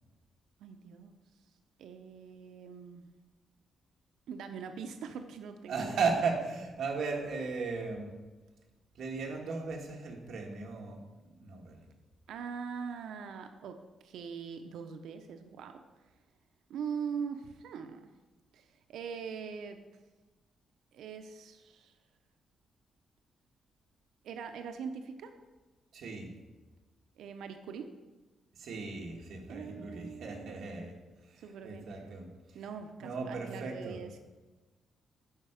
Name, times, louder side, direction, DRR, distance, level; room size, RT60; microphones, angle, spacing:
voice 1, 0.6-1.2 1.8-3.1 4.3-6.0 12.3-15.8 16.7-18.1 18.5-19.8 20.9-21.9 24.2-25.4 27.2-28.0 29.5-30.5 31.4-31.9 32.5-34.2, right 6 dB, 85° right, 7 dB, 0.6 m, -42 dB
voice 2, 5.7-8.2 8.9-11.8 25.9-26.3 28.5-32.6 33.0-34.0, right 4 dB, 60° right, 0 dB, 1.4 m, -36 dB
9.1 x 5.5 x 5.0 m, 1.2 s
cardioid pair, 165°, 0 cm